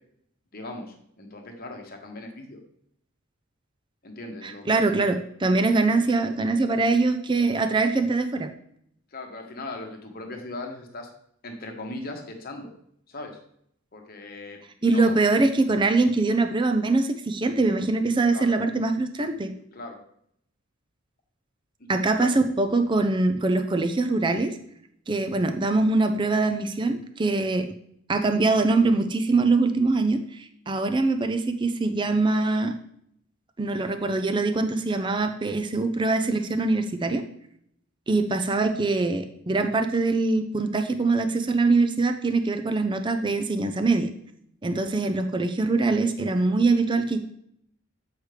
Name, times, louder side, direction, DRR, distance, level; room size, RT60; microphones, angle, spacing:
voice 1, 0.5-2.6 4.0-5.0 9.1-11.1 11.4-12.7 13.1-13.4 13.9-15.2 18.3-18.5 19.7-20.0 21.9-22.4 44.8-44.9, left 2 dB, 45° left, 3 dB, 1.1 m, -39 dB
voice 2, 4.7-8.5 14.8-19.5 21.9-24.6 25.1-27.7 28.1-32.7 33.6-37.2 38.1-44.1 44.6-47.2, right 3 dB, 20° right, 7 dB, 0.5 m, -23 dB
8.0 x 4.8 x 3.3 m, 0.71 s
head